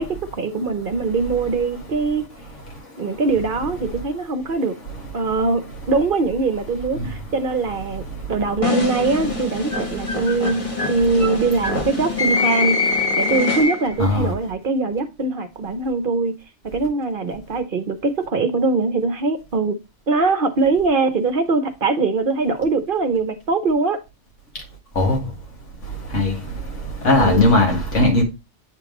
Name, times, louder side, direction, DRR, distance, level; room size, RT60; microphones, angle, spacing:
voice 1, 0.0-2.3 3.0-4.8 5.1-16.3 16.6-19.8 20.1-24.0 27.2-27.4, right 3 dB, 50° right, 0.9 m, -22 dB
sound 1, 8.6-14.0, left 3 dB, 30° left, 1.3 m, -23 dB
voice 2, 14.0-14.3 25.0-25.2 26.1-26.3 27.0-28.2, left 2 dB, 85° left, 2.2 m, -17 dB
8.3 x 3.5 x 3.7 m
omnidirectional pair, 1.2 m